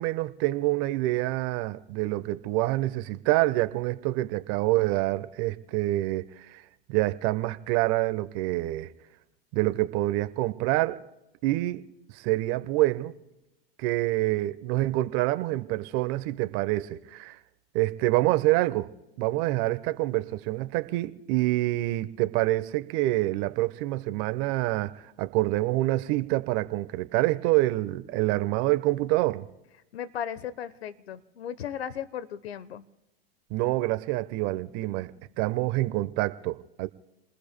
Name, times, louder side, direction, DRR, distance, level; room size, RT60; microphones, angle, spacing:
voice 1, 0.0-6.6 6.9-8.9 9.5-11.0 11.4-11.8 12.1-13.1 13.8-17.4 17.7-18.9 19.2-29.4 33.5-35.1 35.4-36.9, right 18 dB, 45° right, 1.0 m, -26 dB
voice 2, 29.9-32.8, left 9 dB, 85° left, 1.0 m, -36 dB
30.0 x 20.5 x 2.3 m
hypercardioid pair, 110°, 31 cm